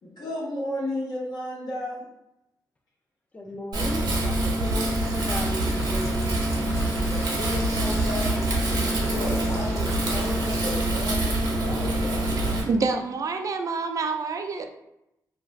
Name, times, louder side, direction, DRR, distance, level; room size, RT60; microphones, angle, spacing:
voice 1, 0.0-2.0 7.1-12.2, left 1 dB, 75° left, -6 dB, 1.0 m, -34 dB
voice 2, 3.3-6.4, equal, 20° left, 3 dB, 0.4 m, -37 dB
Wind, 3.7-12.6, right 1 dB, 80° right, 0.8 m, -25 dB
sound 1, 5.0-10.7, left 1 dB, 40° left, 1.0 m, -43 dB
voice 3, 12.6-14.7, right 4 dB, 50° right, 5 dB, 0.4 m, -27 dB
2.5 x 2.2 x 3.1 m, 0.85 s
cardioid pair, 75°, 7 cm